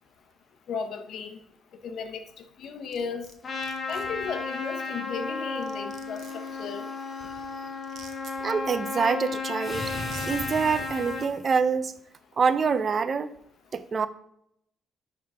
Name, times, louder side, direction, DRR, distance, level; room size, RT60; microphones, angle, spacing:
voice 1, 0.7-1.4 1.8-2.2 2.6-3.3 3.9-6.2 6.6-6.8, left 5 dB, 70° left, 9 dB, 0.8 m, -34 dB
sound 1, 2.9-3.3 3.6-4.0 5.2-5.3 5.6-6.5 7.8-8.3 9.5-9.6 10.0-10.3, right 6 dB, 65° right, 1.0 m, -46 dB
Trumpet, 3.4-11.3, left 3 dB, 40° left, 1.5 m, -34 dB
sound 2, 6.0-7.8 9.6-11.5, equal, ahead, 1.9 m, -41 dB
voice 2, 8.4-9.9 10.3-12.0 12.4-13.3 13.7-14.1, right 5 dB, 45° right, 14 dB, 0.5 m, -26 dB
10.0 x 3.8 x 4.8 m, 0.73 s
cardioid pair, 90°, 0 cm